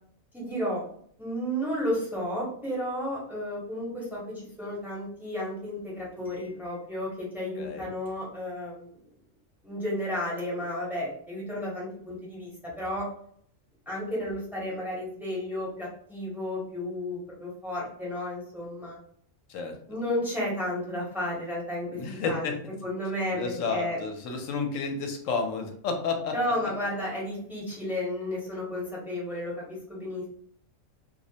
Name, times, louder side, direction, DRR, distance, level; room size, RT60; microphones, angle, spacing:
voice 1, 0.3-0.8 1.2-9.0 9.6-13.1 13.9-19.0 19.9-22.0 22.2-22.5 22.8-24.0 26.3-30.3, left 1 dB, ahead, -6 dB, 0.6 m, -32 dB
voice 2, 7.6-7.9 19.5-19.8 21.9-22.6 23.3-26.3, left 4 dB, 75° left, 4 dB, 0.9 m, -31 dB
2.4 x 2.0 x 2.7 m, 0.63 s
omnidirectional pair, 1.4 m